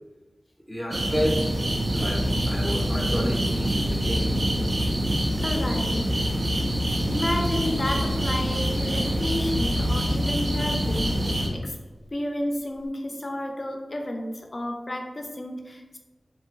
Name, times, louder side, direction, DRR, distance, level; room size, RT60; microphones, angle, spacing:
voice 1, 0.7-1.4 1.9-4.3, equal, 5° right, -3 dB, 0.6 m, -30 dB
sound 1, 0.9-11.5, right 1 dB, 65° right, 0.5 m, -26 dB
Organ, 1.4-11.7, left 2 dB, 85° right, 1.1 m, -32 dB
voice 2, 5.4-6.1 7.1-11.1 11.5-11.8 12.1-16.0, left 1 dB, 45° left, 3 dB, 0.4 m, -31 dB
2.8 x 2.1 x 3.0 m, 1.1 s
wide cardioid pair, 65°, 0 cm